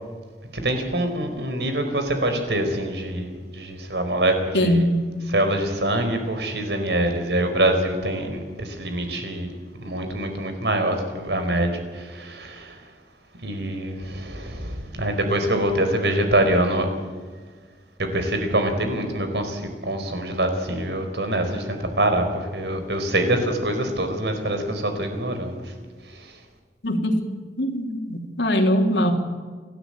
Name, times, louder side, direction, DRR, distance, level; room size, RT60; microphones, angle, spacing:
voice 1, 0.5-4.9 5.3-9.5 9.8-12.9 13.4-16.9 18.0-25.7 26.0-26.4, right 1 dB, 75° right, 6 dB, 4.5 m, -25 dB
voice 2, 4.5-5.0 26.8-27.2 27.6-29.1, equal, 85° left, 3 dB, 3.3 m, -21 dB
29.5 x 13.0 x 8.9 m, 1.5 s
head